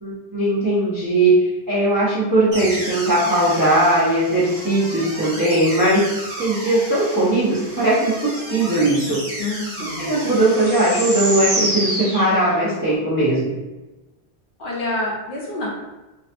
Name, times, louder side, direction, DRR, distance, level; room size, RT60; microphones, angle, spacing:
voice 1, 0.0-6.0 6.4-9.2 10.0-13.5, right 1 dB, 25° right, -9 dB, 0.5 m, -19 dB
sound 1, 2.5-12.8, right 1 dB, 50° right, 1.1 m, -30 dB
voice 2, 9.4-10.1 14.6-15.8, left 2 dB, 60° left, -5 dB, 0.7 m, -27 dB
2.5 x 2.2 x 2.5 m, 1.1 s
omnidirectional pair, 1.1 m